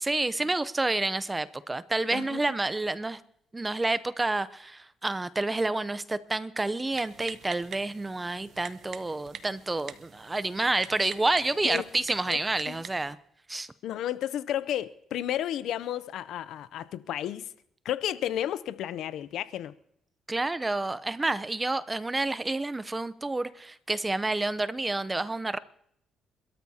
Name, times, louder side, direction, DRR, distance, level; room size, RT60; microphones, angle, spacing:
voice 1, 0.0-3.2 3.5-13.2 13.5-13.7 20.3-25.6, right 2 dB, 20° right, 0.6 m, -29 dB
voice 2, 2.1-2.4 11.6-11.8 12.3-12.4 12.7-12.8 13.8-17.5 17.8-19.7, left 11 dB, 80° left, 0.5 m, -32 dB
Typing, 6.9-13.1, right 8 dB, 65° right, 0.8 m, -46 dB
27.0 x 13.0 x 2.8 m
cardioid pair, 90°, 0 cm